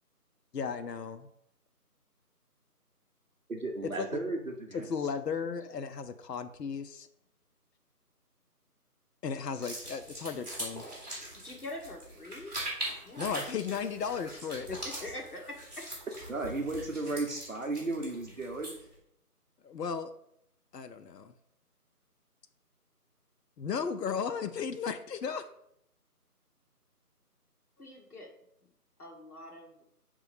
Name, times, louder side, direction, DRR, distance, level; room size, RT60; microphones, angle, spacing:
voice 1, 0.5-1.3 3.8-4.2 4.7-7.1 9.2-10.8 13.2-14.8 19.6-20.1 20.7-21.3 23.6-25.5, left 6 dB, 85° left, 9 dB, 0.6 m, -35 dB
voice 2, 3.5-4.9 16.3-18.7, right 2 dB, 55° right, 2 dB, 0.8 m, -34 dB
sound 1, 9.5-18.9, right 1 dB, 25° right, 1.9 m, -42 dB
voice 3, 11.4-12.5 12.9-13.3 14.5-15.8 27.8-28.3 29.0-29.7, left 1 dB, 65° left, 0 dB, 1.6 m, -44 dB
5.2 x 3.6 x 4.9 m, 0.75 s
figure-of-eight pair, 175°, 47 cm